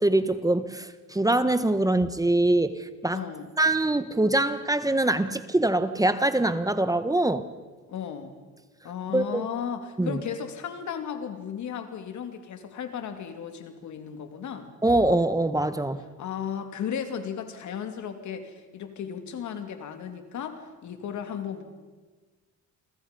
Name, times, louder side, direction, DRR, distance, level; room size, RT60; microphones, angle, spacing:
voice 1, 0.0-3.2 3.6-7.5 9.1-9.4 10.0-10.2 14.8-16.0, right 2 dB, 10° right, 11 dB, 1.2 m, -24 dB
voice 2, 3.1-3.5 7.9-8.3 8.8-14.7 16.2-21.6, left 8 dB, 70° left, 7 dB, 2.9 m, -35 dB
29.0 x 23.5 x 5.4 m, 1.3 s
cardioid pair, 90°, 30 cm